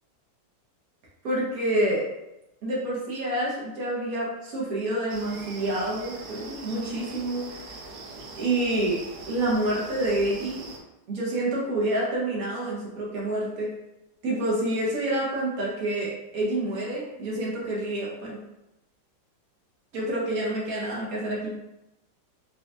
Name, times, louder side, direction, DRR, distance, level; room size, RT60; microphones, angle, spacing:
voice 1, 1.2-2.0 2.6-7.8 8.4-9.0 9.3-10.6 11.1-13.7 14.2-18.4 19.9-21.5, right 1 dB, 60° right, -4 dB, 1.1 m, -28 dB
sound 1, 5.1-10.8, right 3 dB, 85° right, 1.3 m, -42 dB
4.2 x 2.3 x 2.5 m, 0.90 s
omnidirectional pair, 2.0 m